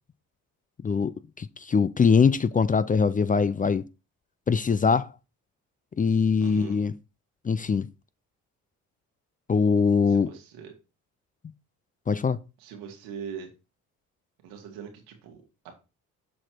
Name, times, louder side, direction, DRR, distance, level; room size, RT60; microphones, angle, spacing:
voice 1, 1.4-3.8 4.5-5.1 6.0-6.9 7.4-7.9 9.5-10.3 12.1-12.4, left 5 dB, 25° left, 0.4 m, -22 dB
voice 2, 6.4-6.8 10.1-10.7 12.6-13.5 14.4-15.7, right 7 dB, 90° right, 1.9 m, -41 dB
7.3 x 4.4 x 4.5 m
supercardioid pair, 60°, 37 cm